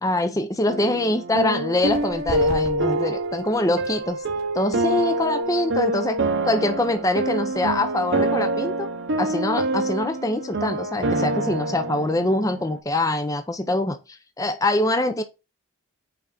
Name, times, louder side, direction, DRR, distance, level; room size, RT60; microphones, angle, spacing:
voice 1, 0.0-4.2 4.5-8.9 9.2-15.2, left 1 dB, 15° left, 0.5 m, -24 dB
sound 1, 0.7-12.8, right 2 dB, 55° right, 0.8 m, -26 dB
sound 2, 1.8-9.1, equal, 70° left, 3.2 m, -42 dB
5.9 x 3.9 x 4.9 m
head